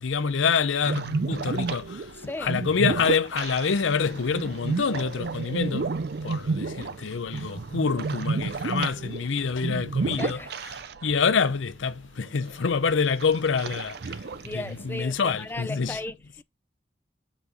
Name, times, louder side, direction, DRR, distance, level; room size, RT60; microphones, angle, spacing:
voice 1, 0.0-2.1 2.4-5.9 6.2-10.4 11.0-16.0, left 5 dB, 75° left, 0.6 m, -26 dB
sound 1, 0.8-11.2 11.5-11.6 12.3-12.7 13.2-15.0, right 4 dB, 55° right, 0.5 m, -31 dB
voice 2, 10.2-10.5 14.4-16.4, left 2 dB, 10° left, 0.4 m, -36 dB
6.9 x 4.2 x 5.0 m
head